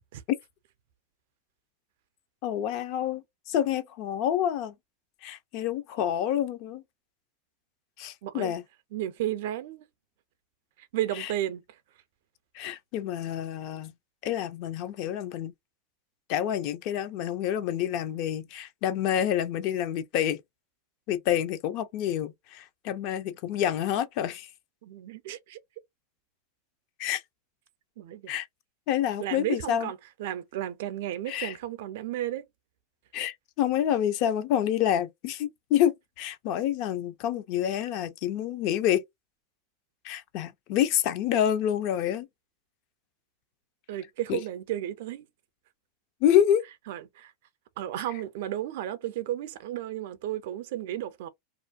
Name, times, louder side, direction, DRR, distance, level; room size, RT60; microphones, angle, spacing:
voice 1, 2.4-4.7 5.2-6.8 8.0-8.6 11.2-11.3 12.5-13.9 14.2-15.5 16.3-20.4 21.1-24.5 27.0-27.2 28.3-28.5 28.9-29.9 31.3-31.5 33.1-39.0 40.0-42.3 44.3-44.4 46.2-46.6, left 10 dB, 55° left, 0.5 m, -28 dB
voice 2, 8.2-8.5 8.9-9.8 10.9-11.6 24.8-25.6 28.0-28.3 29.2-32.4 43.9-45.3 46.9-47.3 47.8-51.3, right 12 dB, 70° right, 0.5 m, -33 dB
2.4 x 2.2 x 2.5 m
hypercardioid pair, 100°, 0 cm